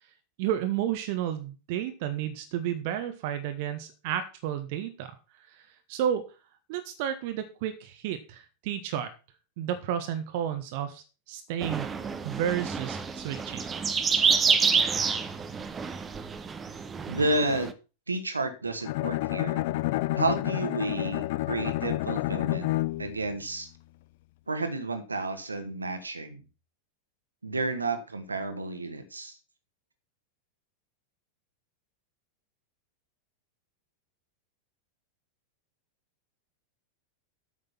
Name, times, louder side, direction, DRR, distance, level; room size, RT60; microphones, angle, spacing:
voice 1, 0.4-5.1 5.5-6.2 6.7-9.1 9.6-11.9 12.2-13.6, right 10 dB, 50° right, 9 dB, 1.1 m, -32 dB
sound 1, 11.6-17.7, right 5 dB, 20° right, 1.0 m, -28 dB
voice 2, 17.1-17.7 18.1-19.6 20.2-22.7 23.0-23.7 24.5-26.4 27.4-29.4, right 2 dB, 80° right, 9 dB, 1.6 m, -31 dB
Bowed string instrument, 18.8-23.2, left 18 dB, 50° left, 0.4 m, -29 dB
8.6 x 6.6 x 5.8 m, 0.32 s
figure-of-eight pair, 90°, 0 cm